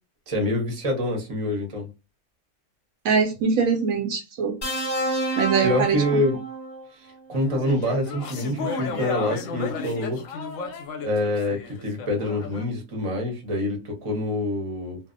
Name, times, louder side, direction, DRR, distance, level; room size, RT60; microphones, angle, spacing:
voice 1, 0.3-1.9 5.6-6.4 7.0-10.2 11.0-15.0, left 1 dB, 30° right, 0.7 m, -26 dB
voice 2, 3.0-4.6 5.4-6.0, right 5 dB, 70° right, 0.9 m, -22 dB
sound 1, 4.6-6.9 8.2-8.4, right 1 dB, 30° left, 0.5 m, -29 dB
sound 2, 7.3-12.6, left 5 dB, 70° left, 0.9 m, -33 dB
2.6 x 2.0 x 2.5 m
omnidirectional pair, 1.6 m